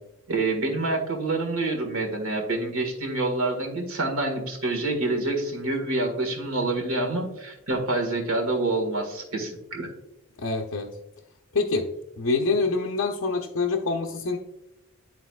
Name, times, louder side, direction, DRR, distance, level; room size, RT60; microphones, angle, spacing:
voice 1, 0.3-9.9, right 2 dB, 90° right, 2 dB, 1.6 m, -27 dB
voice 2, 10.4-10.9 11.5-11.9 12.2-14.4, left 3 dB, 65° left, 0 dB, 0.6 m, -25 dB
10.5 x 4.0 x 2.3 m, 0.87 s
head